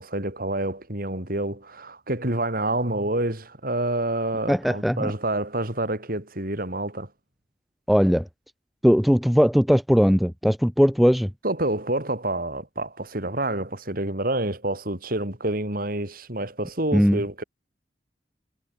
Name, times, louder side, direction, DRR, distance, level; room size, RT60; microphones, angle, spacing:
voice 1, 0.0-7.1 11.4-17.4, right 1 dB, 55° right, 4.8 m, -28 dB
voice 2, 4.5-5.1 7.9-8.2 8.8-11.3 16.9-17.2, equal, ahead, 0.3 m, -19 dB
head